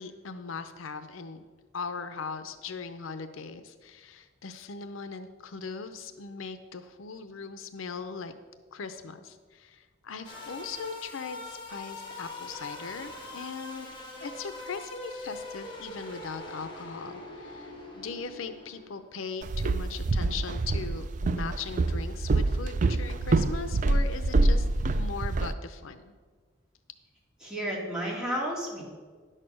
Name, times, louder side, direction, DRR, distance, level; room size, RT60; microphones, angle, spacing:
voice 1, 0.0-1.4 1.7-8.3 8.7-13.9 14.2-26.1, left 5 dB, 80° left, 10 dB, 0.6 m, -39 dB
sound 1, 10.2-19.0, left 2 dB, 25° left, 1.9 m, -42 dB
Walk footsteps, 19.4-25.5, right 2 dB, 40° right, 0.4 m, -26 dB
voice 2, 27.4-28.9, equal, 5° right, -4 dB, 2.3 m, -32 dB
10.5 x 6.6 x 6.3 m, 1.5 s
head